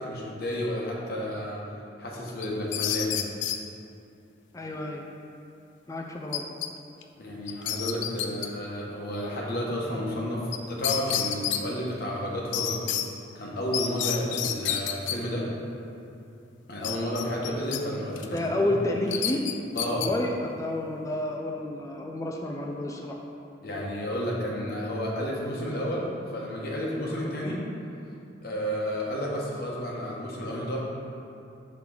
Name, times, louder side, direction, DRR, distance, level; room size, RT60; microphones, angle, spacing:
voice 1, 0.0-1.6 2.0-3.2 7.2-12.8 13.3-15.4 16.7-18.7 19.7-20.1 23.6-27.6 28.4-30.8, equal, 55° left, -3 dB, 1.1 m, -31 dB
sound 1, 2.4-3.6 6.3-6.7 7.0-7.1 7.5-8.5 10.5-10.6 10.8-11.6 12.5-13.0 13.7-15.2 16.8-17.8 18.2-18.4 19.1-20.1, left 10 dB, 85° left, 0.4 m, -29 dB
voice 2, 4.5-5.0 5.9-6.5 18.3-19.4 19.9-23.2, left 1 dB, 20° left, 0 dB, 0.4 m, -30 dB
5.8 x 3.8 x 5.9 m, 2.6 s
head